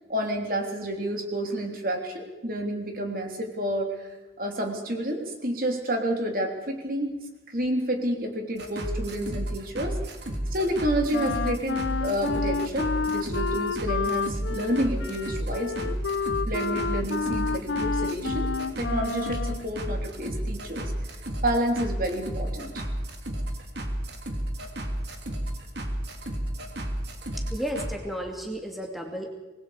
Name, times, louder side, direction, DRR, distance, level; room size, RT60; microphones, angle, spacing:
voice 1, 0.1-7.2 7.5-10.0 10.5-15.9 16.5-18.5 18.8-20.9 21.4-22.7, right 1 dB, 50° right, 3 dB, 3.3 m, -29 dB
sound 1, 8.6-27.9, right 1 dB, 65° right, 3.0 m, -32 dB
Wind instrument woodwind instrument, 11.1-19.7, left 5 dB, 85° left, 0.7 m, -30 dB
voice 2, 27.4-29.3, equal, ahead, 1 dB, 2.3 m, -33 dB
26.0 x 20.0 x 5.0 m, 1.1 s
head